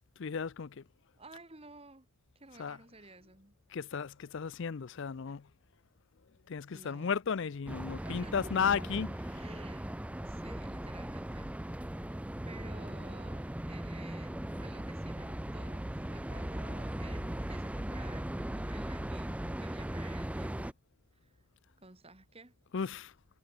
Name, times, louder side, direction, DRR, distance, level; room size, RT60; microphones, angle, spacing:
voice 1, 0.2-0.8 2.5-2.8 3.7-5.5 6.5-9.6 22.7-23.1, left 6 dB, 55° left, 0.5 m, -34 dB
voice 2, 1.2-2.1 2.4-3.5 6.7-7.1 8.0-8.5 9.3-10.0 10.3-11.5 12.4-20.8 21.2-21.3 21.8-22.5, right 2 dB, 25° right, 2.0 m, -53 dB
sound 1, 7.7-20.7, right 1 dB, 5° right, 0.4 m, -38 dB
head